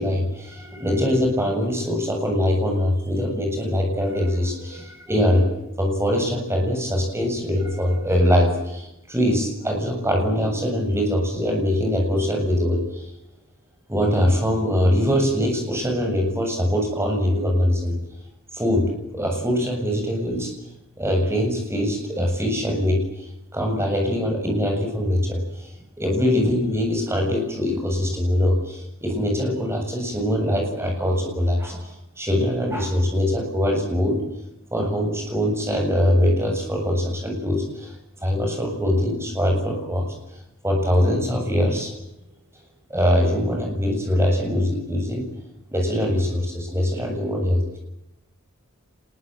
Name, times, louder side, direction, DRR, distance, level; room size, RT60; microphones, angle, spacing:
voice 1, 0.0-13.0 13.9-18.0 18.5-20.5 21.0-23.1 23.5-25.7 26.0-34.2 34.7-37.9 38.2-40.1 40.6-41.9 42.9-45.3 45.7-47.8, left 1 dB, 15° right, 2 dB, 7.5 m, -22 dB
25.0 x 21.5 x 9.2 m, 0.87 s
head